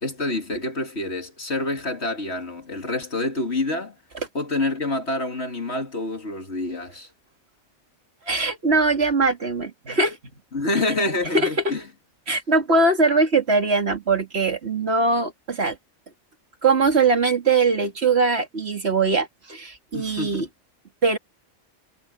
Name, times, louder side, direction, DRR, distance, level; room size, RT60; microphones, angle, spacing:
voice 1, 0.0-3.9 4.3-7.1 10.5-11.9 19.9-20.5, left 2 dB, 60° left, 2.9 m, -27 dB
voice 2, 8.3-10.2 11.3-11.5 12.3-15.8 16.6-20.5 21.0-21.2, right 3 dB, 55° right, 2.4 m, -21 dB
omnidirectional pair, 1.3 m